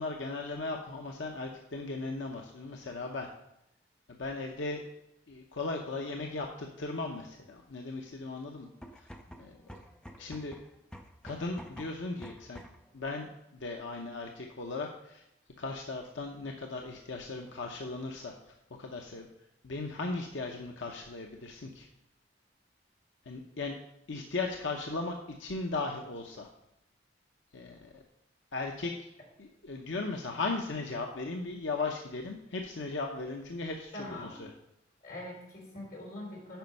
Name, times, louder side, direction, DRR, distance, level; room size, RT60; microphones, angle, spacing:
voice 1, 0.0-3.3 4.2-4.8 5.3-8.7 9.0-9.1 9.4-9.8 10.2-10.6 11.2-12.6 12.9-15.2 15.6-19.3 19.6-21.9 23.3-23.7 24.1-26.5 27.5-28.0 28.5-28.9 29.4-34.5, left 3 dB, 90° left, 2 dB, 0.8 m, -37 dB
sound 1, 8.7-12.9, equal, 5° left, 0.6 m, -49 dB
voice 2, 33.9-34.4 35.0-36.6, left 1 dB, 50° left, -3 dB, 3.6 m, -43 dB
9.1 x 5.4 x 5.3 m, 0.85 s
head